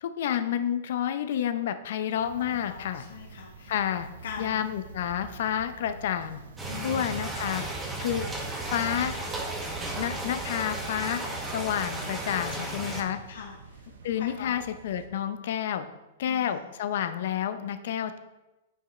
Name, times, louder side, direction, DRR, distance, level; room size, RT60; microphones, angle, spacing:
voice 1, 0.0-3.0 3.7-4.1 4.4-6.4 6.8-7.6 8.0-8.3 8.7-9.2 10.0-11.2 11.5-13.2 14.0-15.9 16.2-18.2, left 9 dB, 60° left, 10 dB, 0.6 m, -29 dB
sound 1, 2.1-15.1, right 5 dB, 85° right, 1.0 m, -47 dB
voice 2, 2.5-3.8 4.2-4.9 6.7-7.2 12.5-12.8 13.3-13.9 14.2-14.6 16.2-16.6, left 6 dB, 75° left, -1 dB, 1.1 m, -42 dB
sound 2, 6.6-13.0, right 2 dB, 10° right, 1.0 m, -34 dB
9.0 x 4.7 x 3.2 m, 1.0 s
hypercardioid pair, 155°, 0 cm